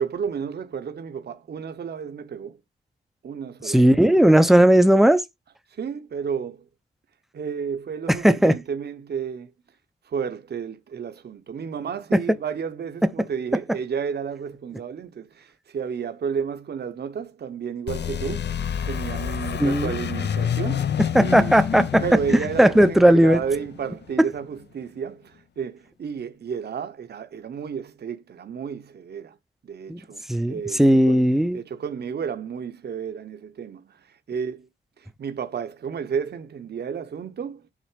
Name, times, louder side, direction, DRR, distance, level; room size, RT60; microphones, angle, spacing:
voice 1, 0.0-2.6 3.2-4.5 5.7-6.7 7.3-9.5 10.0-21.6 22.0-29.4 29.6-31.2 31.5-34.7 35.0-37.7, right 7 dB, 60° right, 0.8 m, -32 dB
voice 2, 3.6-5.2 8.1-8.6 12.1-12.2 19.6-19.9 21.1-22.0 22.6-23.4 24.2-24.3 29.9-30.0 30.3-31.6, right 1 dB, ahead, 0.5 m, -16 dB
sound 1, 17.9-24.5, left 8 dB, 65° left, 0.6 m, -28 dB
7.4 x 4.1 x 4.9 m
wide cardioid pair, 150°, 19 cm